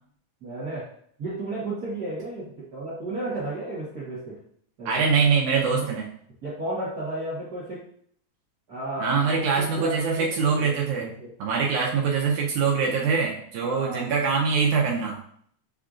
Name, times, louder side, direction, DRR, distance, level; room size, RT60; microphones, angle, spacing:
voice 1, 0.4-0.8 1.2-4.3 4.8-5.1 5.7-5.8 6.4-7.8 8.7-10.7 11.0-11.3 13.6-14.1, right 2 dB, 65° right, -9 dB, 0.9 m, -33 dB
voice 2, 4.9-6.1 9.0-11.1 11.4-15.2, right 5 dB, 80° right, -2 dB, 2.0 m, -23 dB
7.3 x 2.6 x 2.4 m, 0.63 s
omnidirectional pair, 3.5 m